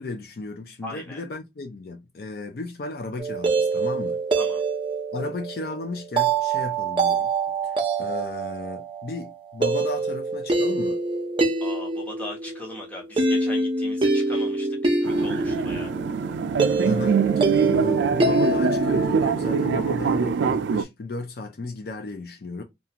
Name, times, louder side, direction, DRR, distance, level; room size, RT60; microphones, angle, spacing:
voice 1, 0.0-4.2 5.1-7.3 7.6-11.0 16.8-22.6, left 2 dB, 55° left, 0.4 m, -34 dB
voice 2, 0.8-1.2 4.3-4.6 11.6-15.9, left 1 dB, 10° left, 0.9 m, -39 dB
sound 1, 3.2-19.1, right 3 dB, 30° right, 0.6 m, -25 dB
sound 2, 15.0-20.8, right 6 dB, 85° right, 0.3 m, -23 dB
2.5 x 2.3 x 2.8 m
head